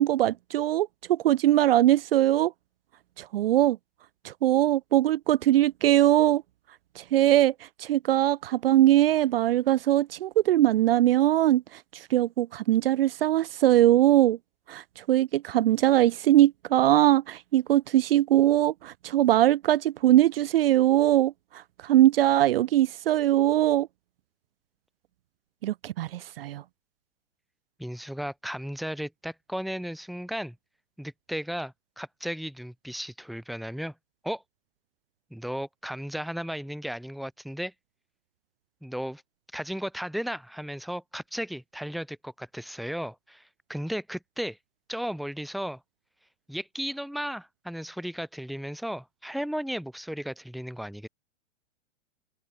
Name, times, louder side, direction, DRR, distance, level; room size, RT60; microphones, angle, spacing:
voice 1, 0.0-2.5 3.2-3.8 4.2-6.4 7.0-7.5 7.8-14.4 14.7-23.9 25.6-26.6, right 13 dB, 50° right, 0.6 m, -22 dB
voice 2, 27.8-30.6 31.0-33.9 34.2-34.4 35.3-37.7 38.8-39.2 39.5-44.6 44.9-45.8 46.5-51.1, equal, ahead, 0.8 m, -35 dB
hypercardioid pair, 165°, 36 cm